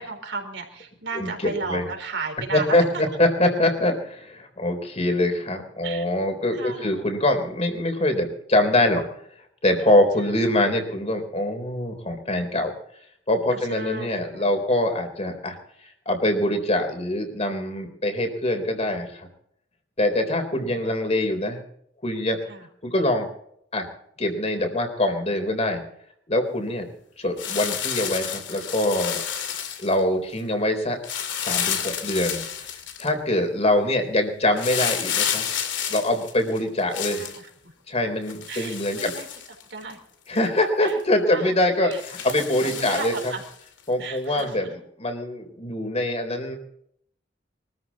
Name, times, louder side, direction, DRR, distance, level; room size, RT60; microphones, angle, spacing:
voice 1, 0.0-3.0 5.8-6.0 6.5-7.0 10.2-10.6 13.5-14.6 20.6-21.0 22.5-22.7 36.9-37.7 38.5-39.3 39.7-40.0 40.8-41.0 41.2-41.5 41.8-42.0 42.6-43.4 44.0-44.7, right 4 dB, 70° right, 4 dB, 4.2 m, -35 dB
voice 2, 2.5-9.0 9.6-12.7 13.3-15.6 16.1-19.3 20.0-21.6 22.0-22.4 22.8-23.3 23.7-23.9 24.2-25.8 26.3-26.9 27.2-29.2 29.8-31.0 31.4-32.7 33.0-35.5 35.9-37.3 37.9-39.1 40.3-43.3 43.9-46.6, left 1 dB, 35° left, 6 dB, 3.8 m, -24 dB
sound 1, 27.4-30.0 31.0-33.1 34.6-37.4 38.3-39.9 40.4-40.5 40.9-41.0 41.9-43.5 44.4-44.5, left 9 dB, 85° left, 2.6 m, -30 dB
23.5 x 14.0 x 4.2 m, 0.69 s
head